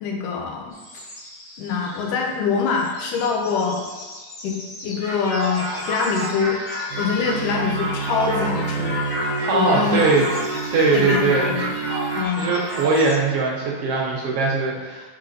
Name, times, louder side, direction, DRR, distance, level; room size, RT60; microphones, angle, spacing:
voice 1, 0.0-0.8 1.6-3.8 4.4-6.6 7.0-9.0 9.5-10.0 10.9-11.6 12.2-12.5, left 5 dB, 85° left, 0 dB, 2.5 m, -24 dB
sound 1, 0.7-13.2, left 1 dB, 45° left, 1.9 m, -42 dB
sound 2, 5.0-12.8, equal, 65° left, 3.3 m, -30 dB
sound 3, 6.9-12.3, right 4 dB, 90° right, 2.2 m, -29 dB
voice 2, 9.5-10.3 10.7-11.6 12.4-15.1, right 3 dB, 75° right, -2 dB, 1.4 m, -20 dB
6.1 x 4.1 x 3.9 m, 1.3 s
omnidirectional pair, 3.6 m